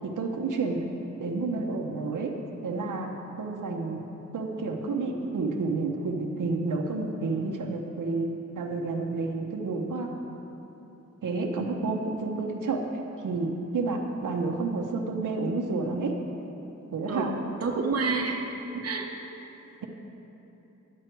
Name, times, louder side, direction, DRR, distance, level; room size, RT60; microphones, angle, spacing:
voice 1, 0.0-0.8 1.2-2.3 2.6-4.1 4.3-10.2 11.2-12.8 13.2-16.2 16.9-17.3 18.7-18.9, right 3 dB, 85° right, 1 dB, 0.9 m, -30 dB
voice 2, 17.6-18.4 18.8-19.1, right 4 dB, 50° right, 1 dB, 0.9 m, -28 dB
10.5 x 8.7 x 4.5 m, 3.0 s
wide cardioid pair, 120°, 31 cm